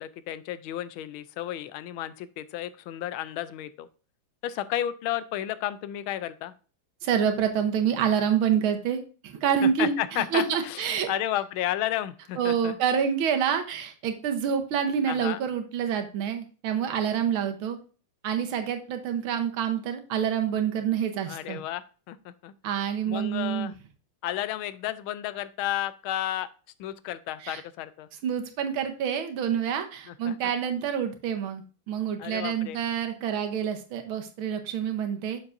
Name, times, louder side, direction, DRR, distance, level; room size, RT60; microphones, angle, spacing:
voice 1, 0.0-3.9 4.4-6.5 9.6-12.8 15.1-15.4 21.3-22.5 23.1-23.7 24.2-26.5 26.8-28.1 30.1-30.5 32.2-32.8, left 12 dB, 80° left, 15 dB, 1.4 m, -32 dB
voice 2, 7.0-11.1 12.4-17.8 18.2-21.6 22.6-23.7 27.4-27.6 28.2-35.4, right 8 dB, 80° right, 6 dB, 1.8 m, -27 dB
7.0 x 6.8 x 2.5 m, 0.37 s
omnidirectional pair, 2.3 m